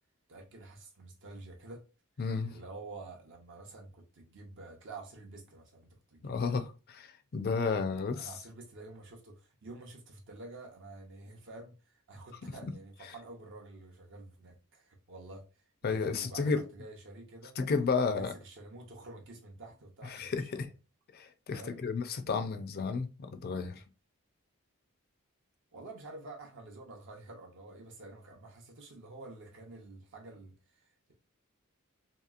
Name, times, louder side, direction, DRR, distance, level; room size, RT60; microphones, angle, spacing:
voice 1, 0.3-1.8 2.4-6.3 8.1-17.6 18.0-20.7 21.5-21.8 25.7-30.8, right 2 dB, 60° right, 0.6 m, -49 dB
voice 2, 2.2-2.6 6.2-8.3 15.8-16.6 17.6-18.3 20.1-20.7 21.1-23.8, left 4 dB, 45° left, 0.4 m, -32 dB
2.9 x 2.7 x 2.3 m
head